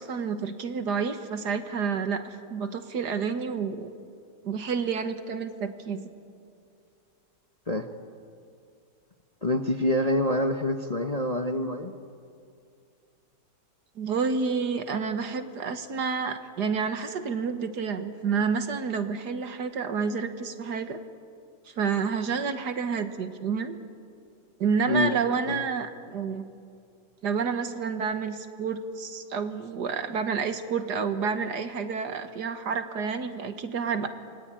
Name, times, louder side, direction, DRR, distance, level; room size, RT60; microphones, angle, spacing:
voice 1, 0.0-2.2 2.5-3.9 4.4-6.1 14.0-21.0 21.7-23.8 24.6-26.5 27.2-34.1, right 5 dB, 65° right, 9 dB, 1.9 m, -29 dB
voice 2, 9.4-11.9 24.9-25.1 25.5-25.6, left 1 dB, 25° left, 5 dB, 0.9 m, -26 dB
28.5 x 23.0 x 9.0 m, 2.4 s
omnidirectional pair, 2.0 m